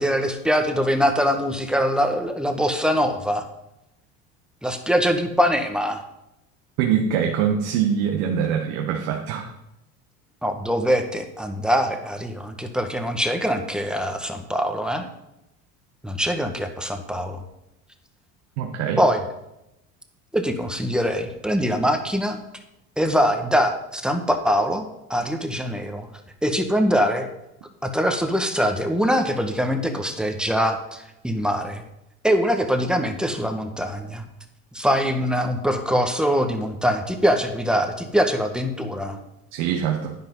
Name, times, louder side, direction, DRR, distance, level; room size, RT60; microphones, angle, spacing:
voice 1, 0.0-3.5 4.6-6.0 10.4-15.0 16.0-17.4 19.0-19.2 20.3-22.4 23.0-24.8 25.1-26.1 26.4-27.3 27.8-31.8 32.2-34.2 34.7-39.2, equal, ahead, 5 dB, 1.7 m, -23 dB
voice 2, 6.8-9.5 18.6-19.0 39.5-40.1, right 8 dB, 70° right, 2 dB, 1.5 m, -23 dB
11.0 x 10.5 x 4.0 m, 0.87 s
hypercardioid pair, 85°, 42 cm